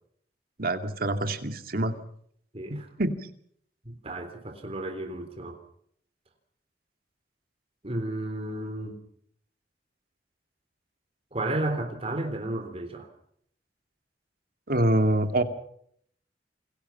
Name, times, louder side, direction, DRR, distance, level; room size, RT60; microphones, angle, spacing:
voice 1, 0.6-2.0 2.7-3.1 14.7-15.4, right 1 dB, 55° right, 7 dB, 2.3 m, -25 dB
voice 2, 2.5-2.9 3.9-5.6 7.8-9.0 11.3-13.1, right 1 dB, 35° right, 5 dB, 3.6 m, -32 dB
28.5 x 22.0 x 5.8 m, 0.67 s
head